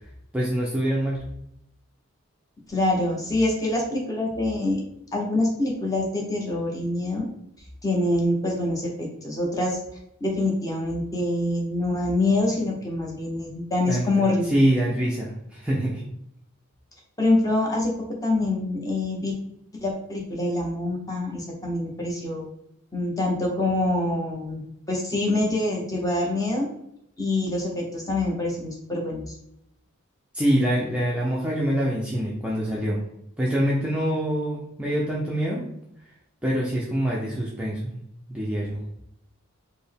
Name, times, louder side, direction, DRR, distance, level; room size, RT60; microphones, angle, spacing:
voice 1, 0.3-1.2 13.9-16.0 30.3-33.0 33.4-35.7 36.4-38.0 38.3-38.8, right 1 dB, 5° right, -5 dB, 0.5 m, -25 dB
voice 2, 2.7-4.8 5.1-7.3 7.8-9.8 10.2-14.5 17.2-17.9 18.2-19.3 19.8-22.5 22.9-24.6 24.9-26.7 27.2-29.2, left 2 dB, 15° left, -2 dB, 0.8 m, -25 dB
4.2 x 2.1 x 3.4 m, 0.76 s
head